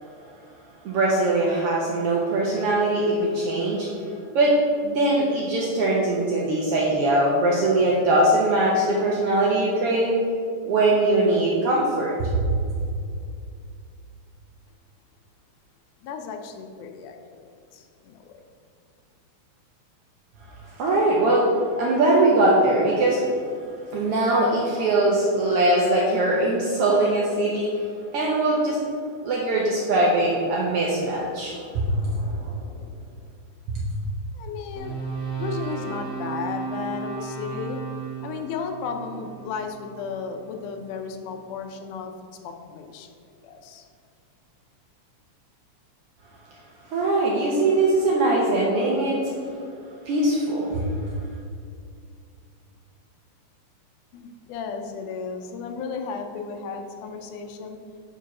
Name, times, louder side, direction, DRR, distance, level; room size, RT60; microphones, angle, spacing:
voice 1, 0.8-4.6 4.8-10.2 10.6-12.3 20.4-21.5 21.8-23.2 23.9-27.9 28.1-28.8 29.2-32.6 33.7-33.8 46.9-49.3 50.0-50.8, right 2 dB, 70° right, -3 dB, 1.4 m, -21 dB
voice 2, 16.0-18.4 34.3-35.0 35.4-37.8 38.2-42.1 42.4-43.1 43.4-43.9 54.1-57.8, left 5 dB, 90° left, 5 dB, 2.2 m, -34 dB
sound 1, 34.7-41.0, right 5 dB, 50° left, 0.9 m, -34 dB
5.6 x 4.7 x 5.9 m, 2.4 s
omnidirectional pair, 3.5 m